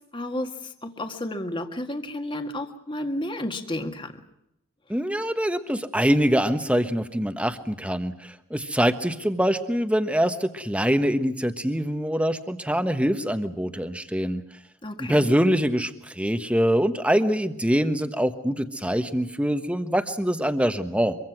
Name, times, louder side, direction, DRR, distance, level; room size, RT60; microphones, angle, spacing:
voice 1, 0.1-4.2 14.8-15.4, left 1 dB, 20° left, 6 dB, 1.8 m, -32 dB
voice 2, 4.9-14.4 15.0-21.2, equal, 5° right, 9 dB, 1.2 m, -24 dB
25.0 x 23.5 x 6.0 m, 0.83 s
head